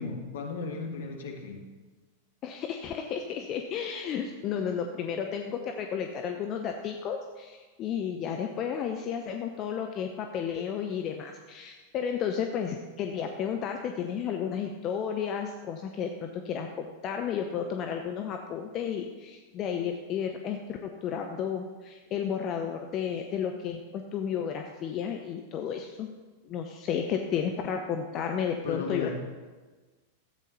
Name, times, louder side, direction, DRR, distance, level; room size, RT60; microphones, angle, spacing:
voice 1, 0.0-1.6 28.6-29.2, left 4 dB, 60° left, 2 dB, 1.7 m, -35 dB
voice 2, 2.4-26.1 26.5-29.2, left 7 dB, 35° left, 4 dB, 0.8 m, -32 dB
13.5 x 8.3 x 4.1 m, 1.3 s
figure-of-eight pair, 90°, 0 cm